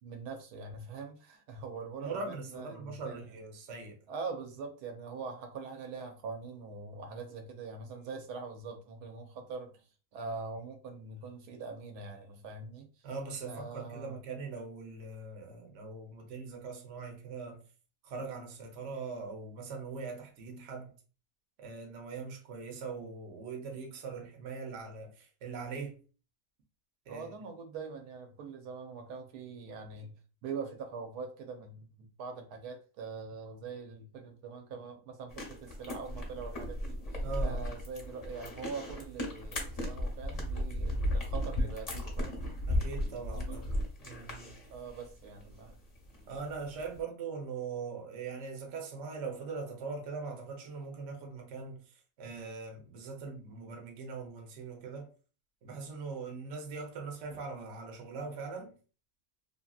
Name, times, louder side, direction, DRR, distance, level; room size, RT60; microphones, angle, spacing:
voice 1, 0.0-3.3 4.1-13.1 13.4-14.2 27.1-30.2 30.4-42.6 43.0-43.6 44.7-45.8 46.1-46.3, right 4 dB, 85° right, 1.2 m, -43 dB
voice 2, 2.0-4.0 13.0-17.6 18.0-20.9 21.6-26.0 27.1-27.3 37.2-37.6 42.7-43.7 44.0-44.6 46.3-55.1 55.6-58.7, right 4 dB, 60° right, 0.9 m, -41 dB
sound 1, 35.3-47.0, left 1 dB, 40° left, 0.5 m, -35 dB
2.7 x 2.7 x 2.3 m
omnidirectional pair, 1.6 m